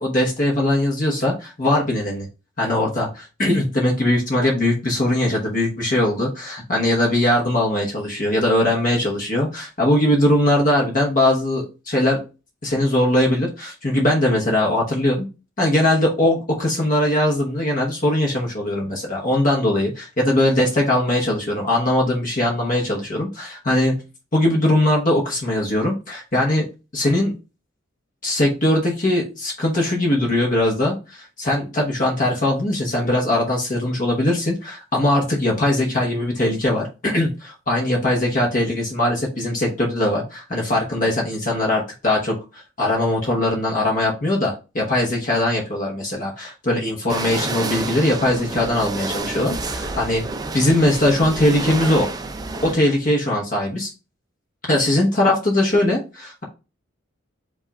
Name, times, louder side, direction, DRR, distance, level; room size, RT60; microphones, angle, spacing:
voice 1, 0.0-2.3 2.6-12.2 12.6-15.3 15.6-24.0 24.3-26.7 26.9-27.3 28.2-50.2 50.5-52.1 52.6-53.9 54.7-56.4, left 1 dB, 40° left, -1 dB, 1.0 m, -20 dB
sound 1, 47.1-52.7, right 3 dB, 20° right, 0.3 m, -29 dB
5.2 x 2.4 x 4.0 m, 0.30 s
head